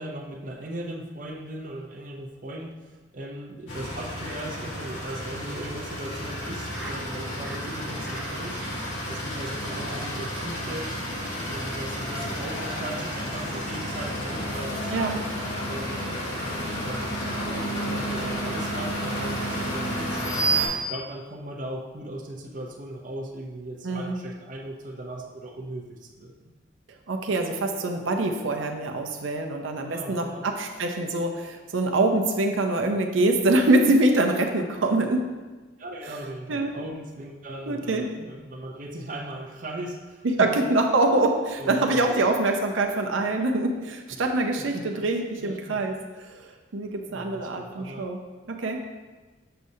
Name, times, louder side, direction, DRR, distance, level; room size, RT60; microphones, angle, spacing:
voice 1, 0.0-11.0 11.5-15.2 15.7-16.0 16.4-20.2 20.7-26.5 29.8-30.4 35.8-40.5 41.6-42.1 44.7-45.0 45.4-45.8 47.1-48.1, right 1 dB, 40° right, 0 dB, 0.6 m, -38 dB
sound 1, 3.7-20.7, right 1 dB, 85° left, 1.8 m, -31 dB
Laughter, 5.2-7.0 7.4-7.7 8.0-8.3 8.6-9.1 9.4-9.5 9.8-9.9 10.2-10.3 10.5-10.7 10.9-11.3, right 1 dB, 5° right, 0.9 m, -45 dB
voice 2, 23.8-24.2 27.1-35.3 36.5-36.7 37.7-38.1 40.2-48.2 48.5-48.8, right 2 dB, 85° right, 3 dB, 0.7 m, -24 dB
6.7 x 6.3 x 2.7 m, 1.3 s
head